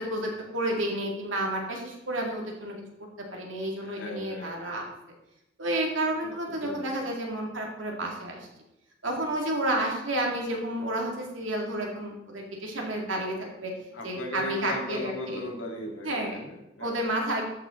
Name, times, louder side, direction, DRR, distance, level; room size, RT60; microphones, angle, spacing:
voice 1, 0.0-2.8 3.3-4.8 5.6-8.5 9.0-13.7 14.0-15.4 16.0-16.4 16.8-17.4, right 1 dB, 90° right, 0 dB, 2.2 m, -31 dB
voice 2, 3.8-4.5 6.2-6.3 6.6-6.8 13.9-16.9, left 1 dB, 85° left, -1 dB, 2.1 m, -37 dB
13.0 x 5.7 x 3.7 m, 0.91 s
head